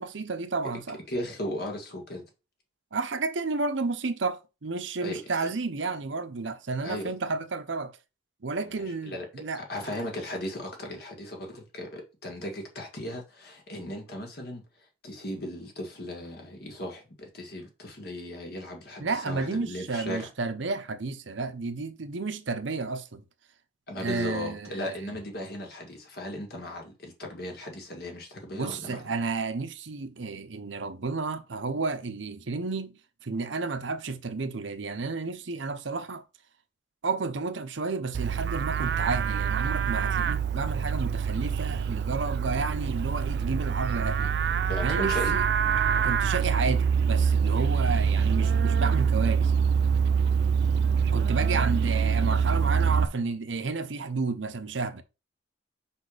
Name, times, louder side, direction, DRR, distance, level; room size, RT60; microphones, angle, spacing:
voice 1, 0.0-1.0 2.9-7.9 8.4-9.6 19.0-23.2 24.0-25.1 28.5-36.2 37.0-44.3 44.8-45.5 46.0-49.7 51.1-55.0, right 4 dB, 75° right, 0.8 m, -31 dB
voice 2, 1.1-2.2 5.0-5.2 6.8-7.1 8.6-9.3 9.6-14.6 15.0-20.3 23.9-29.0 44.7-45.4, left 1 dB, 55° left, 1.9 m, -37 dB
Livestock farm animals working animals, 38.1-53.1, right 6 dB, 60° right, 0.3 m, -25 dB
5.5 x 4.2 x 5.0 m
head